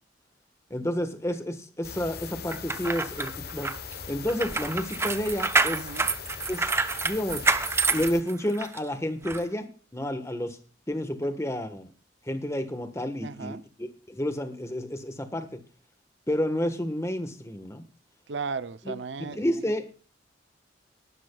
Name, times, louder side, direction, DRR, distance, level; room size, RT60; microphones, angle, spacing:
voice 1, 0.7-3.7 4.1-5.9 6.5-6.7 7.0-7.4 7.9-10.6 10.9-11.9 12.3-15.6 16.3-17.9 18.8-18.9 19.2-19.8, left 1 dB, 15° left, 1.3 m, -30 dB
sound 1, 1.8-8.2, left 6 dB, 55° left, 1.0 m, -40 dB
sound 2, 2.5-8.8 9.3-9.4, right 3 dB, 15° right, 0.6 m, -27 dB
voice 2, 5.7-6.1 13.2-13.6 18.3-19.4, right 5 dB, 70° right, 0.6 m, -35 dB
18.5 x 12.5 x 2.3 m
head